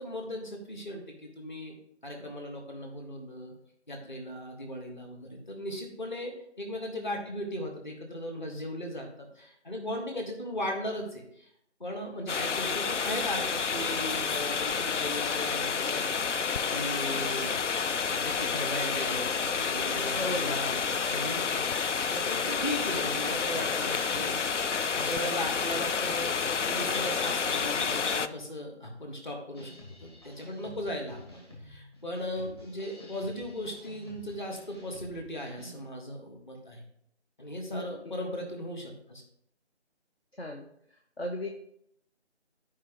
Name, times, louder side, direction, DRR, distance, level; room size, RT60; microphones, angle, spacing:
voice 1, 0.0-1.8 2.0-3.5 3.9-11.5 11.8-16.2 16.7-17.6 18.0-20.8 21.0-21.6 22.1-26.4 26.7-31.2 31.6-36.8 37.4-39.2, equal, 40° left, 1 dB, 1.8 m, -37 dB
sound 1, 12.3-28.3, left 5 dB, 85° left, 0.5 m, -29 dB
voice 2, 20.1-20.6 37.7-37.9 40.4-40.6 41.2-41.5, left 1 dB, 60° left, 1 dB, 1.0 m, -35 dB
sound 2, 29.5-35.8, left 1 dB, 20° left, 1.3 m, -50 dB
13.5 x 5.0 x 3.1 m, 0.72 s
figure-of-eight pair, 165°, 35 cm